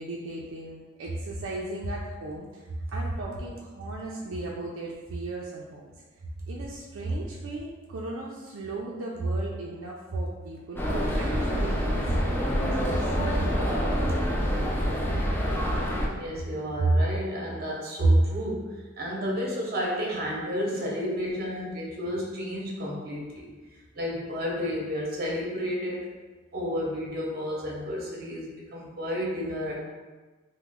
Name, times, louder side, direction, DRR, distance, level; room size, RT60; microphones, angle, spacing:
voice 1, 0.0-2.6 2.9-5.9 6.5-13.1 13.8-13.9, right 2 dB, 75° right, -4 dB, 0.4 m, -38 dB
sound 1, 10.8-16.1, equal, 10° left, 0.3 m, -26 dB
voice 2, 16.1-23.5 23.9-26.1 26.5-28.5 28.7-29.7, right 1 dB, 50° right, -3 dB, 0.7 m, -29 dB
3.0 x 2.0 x 3.5 m, 1.3 s
head